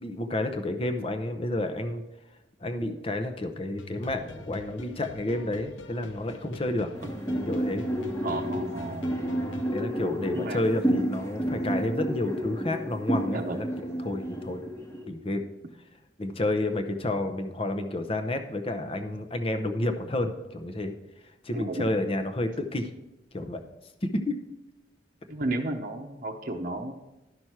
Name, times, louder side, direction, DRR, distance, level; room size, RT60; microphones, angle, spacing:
voice 1, 0.0-2.0 2.6-6.9 7.5-7.8 9.7-13.7 14.0-14.6 15.1-15.5 16.2-20.9 21.4-22.9 23.3-23.6 24.0-24.4, left 1 dB, 30° left, 8 dB, 0.7 m, -30 dB
sound 1, 3.8-9.8, left 2 dB, 85° left, 0.7 m, -44 dB
sound 2, 6.9-15.1, equal, 15° left, 1.2 m, -31 dB
voice 2, 8.2-9.1 10.3-10.8 13.3-13.7 21.5-21.9 25.3-26.9, right 2 dB, 50° right, 2 dB, 0.9 m, -33 dB
11.5 x 6.1 x 4.5 m, 0.98 s
head